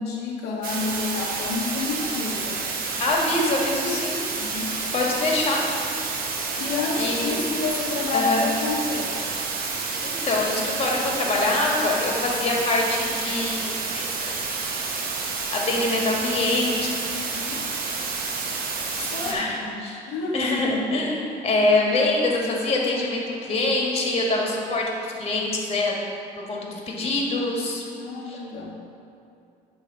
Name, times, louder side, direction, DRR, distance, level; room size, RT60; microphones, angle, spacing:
voice 1, 0.0-2.6 4.4-4.7 6.6-9.2 17.1-17.6 19.1-19.4 20.1-20.5 21.1-21.2 28.0-28.8, left 3 dB, 80° left, -2 dB, 0.8 m, -29 dB
sound 1, 0.6-19.3, right 4 dB, 60° right, 1.0 m, -29 dB
voice 2, 3.0-4.2 4.9-5.6 7.0-7.4 8.1-8.5 10.0-14.3 15.5-16.9 19.0-20.0 20.3-25.9 26.4-27.8 28.2-28.4, left 2 dB, 35° left, -2 dB, 1.5 m, -24 dB
8.2 x 3.3 x 5.6 m, 2.5 s
cardioid pair, 110°, 17 cm